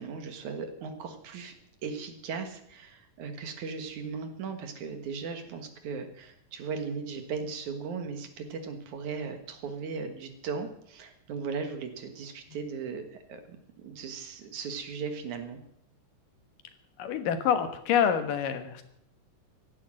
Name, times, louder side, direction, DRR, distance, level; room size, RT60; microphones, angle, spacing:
voice 1, 0.0-1.5 1.8-15.6, right 5 dB, 65° right, 7 dB, 2.9 m, -37 dB
voice 2, 17.0-18.8, left 8 dB, 85° left, 8 dB, 3.1 m, -26 dB
15.5 x 11.5 x 7.6 m, 0.71 s
omnidirectional pair, 3.8 m